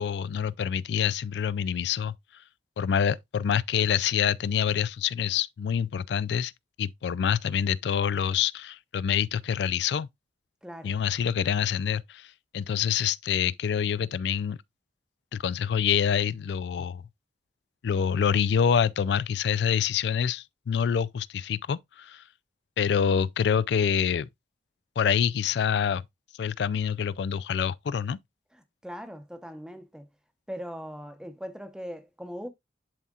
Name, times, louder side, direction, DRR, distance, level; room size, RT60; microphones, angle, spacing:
voice 1, 0.0-2.1 2.8-6.5 6.8-10.1 10.8-14.6 15.3-17.0 17.8-22.2 22.8-24.3 25.0-26.0 26.4-28.2, left 8 dB, 75° left, 0.3 m, -26 dB
voice 2, 10.6-10.9 28.8-30.1 30.5-32.5, equal, 5° right, 0.7 m, -39 dB
11.0 x 4.2 x 2.4 m
head